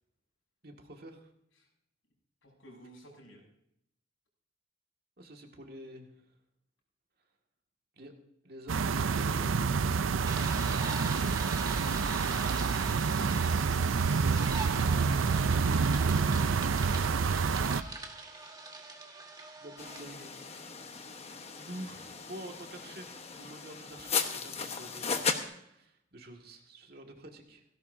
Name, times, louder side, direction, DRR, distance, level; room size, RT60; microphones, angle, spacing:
voice 1, 0.6-1.3 5.2-6.3 8.0-8.1 8.4-9.6 19.6-20.5 20.8-27.6, right 1 dB, 50° right, 2 dB, 2.0 m, -48 dB
voice 2, 2.4-3.4 13.9-14.6 16.3-16.6 18.3-18.5, equal, 80° left, 0 dB, 6.0 m, -54 dB
sound 1, 8.7-17.8, right 5 dB, 85° right, 0.5 m, -28 dB
sound 2, 10.2-20.0, right 3 dB, 20° right, 1.5 m, -43 dB
sound 3, 19.8-25.4, left 5 dB, 30° left, 1.1 m, -36 dB
17.5 x 16.5 x 2.7 m, 0.75 s
head